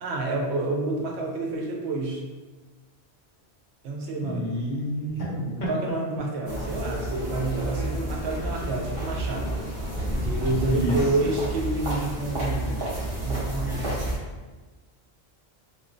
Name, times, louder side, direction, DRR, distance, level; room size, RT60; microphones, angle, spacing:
voice 1, 0.0-2.2 3.8-4.5 5.7-9.6 10.2-12.9 13.2-14.2, right 2 dB, 85° right, 0 dB, 0.8 m, -29 dB
voice 2, 4.2-5.7 10.6-11.0, right 1 dB, 55° left, -4 dB, 0.7 m, -29 dB
sound 1, 6.4-14.2, right 1 dB, 65° right, 1.1 m, -30 dB
3.0 x 2.1 x 2.5 m, 1.3 s
omnidirectional pair, 1.1 m